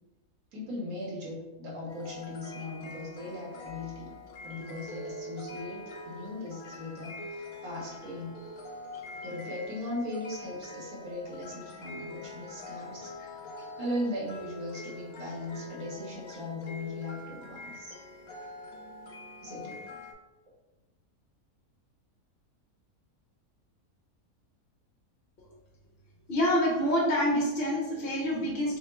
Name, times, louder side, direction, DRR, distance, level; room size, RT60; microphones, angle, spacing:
voice 1, 0.5-4.1 4.4-8.4 9.1-17.9 19.4-19.8, left 1 dB, 85° right, -3 dB, 1.5 m, -38 dB
sound 1, 1.9-20.1, left 2 dB, 85° left, 1.1 m, -44 dB
voice 2, 26.3-28.8, equal, 50° left, -3 dB, 0.9 m, -27 dB
3.4 x 2.2 x 4.2 m, 1.1 s
omnidirectional pair, 1.5 m